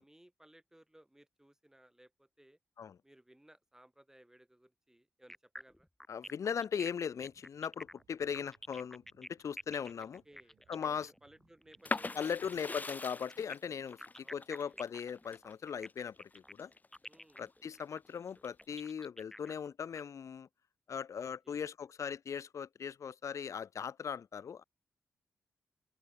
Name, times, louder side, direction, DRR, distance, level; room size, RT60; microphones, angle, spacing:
voice 1, 0.0-2.6 3.0-5.9 10.0-12.9 14.2-14.7 17.1-17.4 21.2-21.6, right 1 dB, 10° right, 2.3 m, -62 dB
sound 1, 5.3-12.1 13.3-20.0, left 1 dB, 5° left, 0.6 m, -50 dB
voice 2, 6.1-10.2 10.7-11.1 12.1-16.7 17.4-20.5 20.9-24.6, left 7 dB, 70° left, 1.0 m, -39 dB
sound 2, 6.6-12.7, right 8 dB, 80° right, 5.5 m, -75 dB
sound 3, 11.8-17.5 17.9-18.8, left 3 dB, 30° left, 1.2 m, -42 dB
open air
cardioid pair, 65°, 5 cm